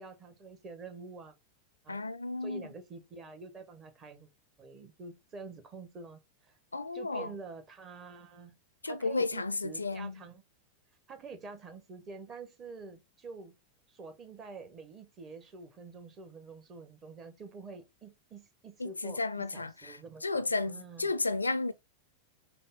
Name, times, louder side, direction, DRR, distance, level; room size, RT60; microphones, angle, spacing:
voice 1, 0.0-1.3 1.8-2.0 2.4-4.3 4.6-6.6 6.9-8.6 8.8-10.4 11.1-13.5 13.9-21.1, right 4 dB, 30° right, 1.0 m, -47 dB
voice 2, 1.9-2.7 6.7-7.3 8.8-10.2 18.8-21.7, left 3 dB, 80° left, 0.4 m, -33 dB
5.6 x 2.0 x 3.7 m
figure-of-eight pair, 90°, 0 cm